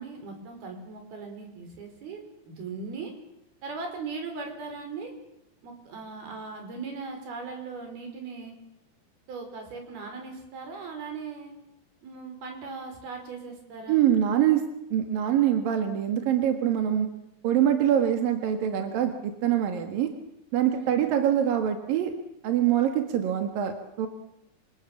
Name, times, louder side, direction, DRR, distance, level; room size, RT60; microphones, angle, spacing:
voice 1, 0.0-3.1 3.6-5.1 5.6-8.5 9.3-11.5 12.0-14.1 17.9-18.2 20.7-21.2, right 4 dB, 90° right, 4 dB, 7.1 m, -39 dB
voice 2, 13.9-14.6 14.9-17.1 17.4-20.1 20.5-22.1 22.4-24.1, right 10 dB, 70° right, 6 dB, 3.5 m, -24 dB
27.5 x 27.0 x 7.4 m, 0.86 s
omnidirectional pair, 4.3 m